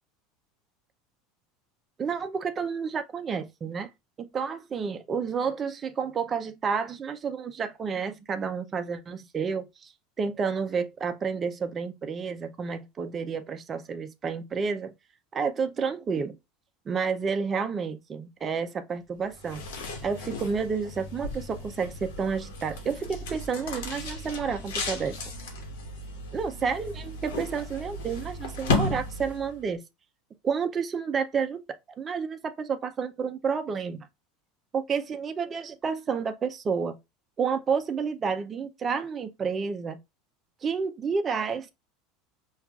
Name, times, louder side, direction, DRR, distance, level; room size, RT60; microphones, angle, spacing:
voice 1, 2.0-3.9 4.2-9.9 10.2-14.9 15.3-16.4 16.9-25.2 26.3-29.8 30.4-31.6 32.0-34.1 34.7-37.0 37.4-40.0 40.6-41.7, right 5 dB, 25° right, 0.4 m, -30 dB
sound 1, 19.3-29.6, left 3 dB, 85° left, 1.0 m, -34 dB
5.3 x 2.3 x 2.3 m
supercardioid pair, 140°, 0 cm